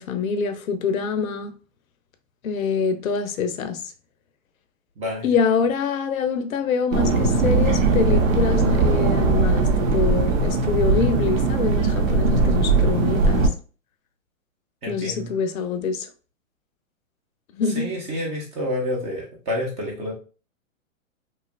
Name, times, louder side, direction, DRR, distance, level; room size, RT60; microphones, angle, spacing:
voice 1, 0.0-1.5 2.4-3.8 5.2-13.5 14.9-16.1 17.5-17.9, left 5 dB, 80° left, 0.6 m, -25 dB
voice 2, 5.0-5.3 14.8-15.3 17.7-20.1, left 1 dB, 15° right, 0.5 m, -29 dB
sound 1, 6.9-13.5, right 3 dB, 70° right, 0.7 m, -19 dB
2.9 x 2.4 x 2.2 m
hypercardioid pair, 130°, 41 cm